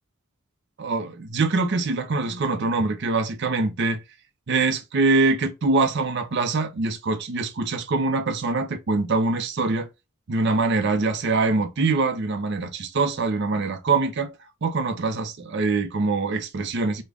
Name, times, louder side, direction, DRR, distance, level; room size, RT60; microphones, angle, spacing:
voice 1, 0.8-4.0 4.5-9.9 10.3-14.3 14.6-17.0, right 3 dB, 55° right, 0.5 m, -24 dB
3.6 x 2.1 x 3.3 m
head